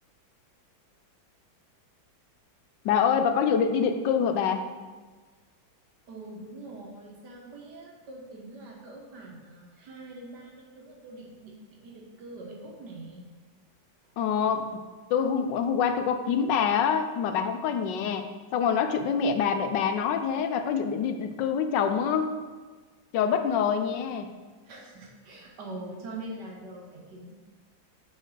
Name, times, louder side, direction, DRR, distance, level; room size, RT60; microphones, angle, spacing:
voice 1, 2.8-4.6 14.2-14.8 15.1-22.4 23.1-24.3, left 7 dB, 75° left, 8 dB, 1.3 m, -26 dB
voice 2, 6.1-13.3 24.6-27.3, right 2 dB, 65° right, 0 dB, 1.7 m, -43 dB
6.6 x 4.5 x 6.2 m, 1.4 s
omnidirectional pair, 2.0 m